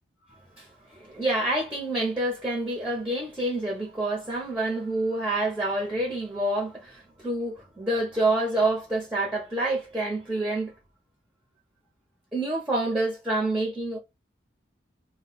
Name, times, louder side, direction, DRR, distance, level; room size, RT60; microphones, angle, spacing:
voice 1, 0.5-10.7 12.3-14.0, right 2 dB, 5° right, 0.8 m, -27 dB
2.3 x 2.3 x 3.9 m
head